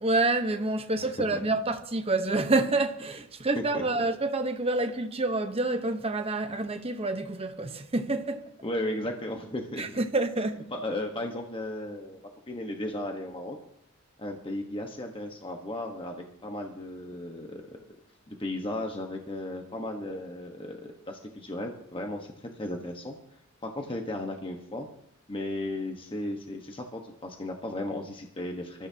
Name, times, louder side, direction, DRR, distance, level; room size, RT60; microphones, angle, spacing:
voice 1, 0.0-8.5 9.8-10.7, right 2 dB, 30° right, 1.0 m, -28 dB
voice 2, 1.0-1.4 3.7-3.8 8.6-9.9 10.7-13.6 14.2-17.6 18.3-23.1 23.6-24.9 25.3-28.9, left 1 dB, 25° left, 1.3 m, -35 dB
25.5 x 14.0 x 2.9 m
head